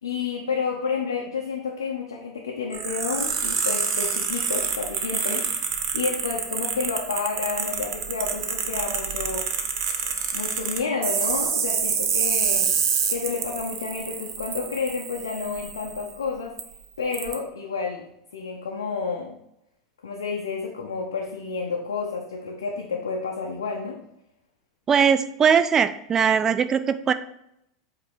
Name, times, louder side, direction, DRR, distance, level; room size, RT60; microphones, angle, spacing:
voice 1, 0.0-9.5 10.3-12.7 13.1-16.5 17.0-18.0 18.3-19.4 20.0-24.0, left 5 dB, 70° left, -1 dB, 0.8 m, -30 dB
sound 1, 2.7-16.1 16.6-16.7 17.1-17.3, right 6 dB, 60° right, 0.9 m, -27 dB
voice 2, 24.9-27.1, right 7 dB, 25° right, 12 dB, 0.4 m, -20 dB
8.1 x 2.9 x 4.6 m, 0.78 s
figure-of-eight pair, 85°, 2 cm